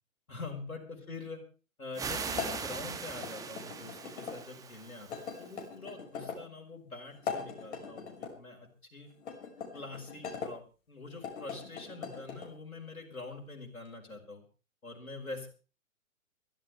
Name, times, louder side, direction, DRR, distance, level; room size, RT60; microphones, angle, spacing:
voice 1, 0.3-1.4 1.8-9.1 9.7-14.4 14.8-15.5, left 3 dB, 85° left, 1 dB, 4.9 m, -45 dB
sound 1, 1.9-5.6, right 6 dB, 10° right, 1.2 m, -40 dB
sound 2, 2.4-4.4 5.1-6.4 7.1-8.3 9.2-10.5 11.1-12.5, left 6 dB, 55° left, 5.8 m, -41 dB
23.5 x 13.5 x 3.4 m, 0.36 s
figure-of-eight pair, 125°, 42 cm